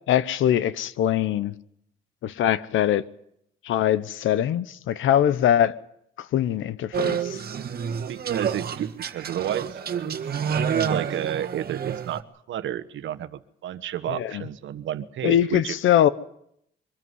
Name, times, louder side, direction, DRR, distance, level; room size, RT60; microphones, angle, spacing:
voice 1, 0.1-1.5 2.2-3.0 3.6-5.8 6.2-7.4 14.1-14.4 15.2-16.1, left 11 dB, 80° left, 1.0 m, -22 dB
sound 1, 6.9-12.2, right 7 dB, 50° right, 1.7 m, -28 dB
voice 2, 8.1-10.1 10.7-12.2 12.5-15.8, right 11 dB, 75° right, 1.3 m, -31 dB
24.0 x 13.5 x 9.7 m
cardioid pair, 90°, 20 cm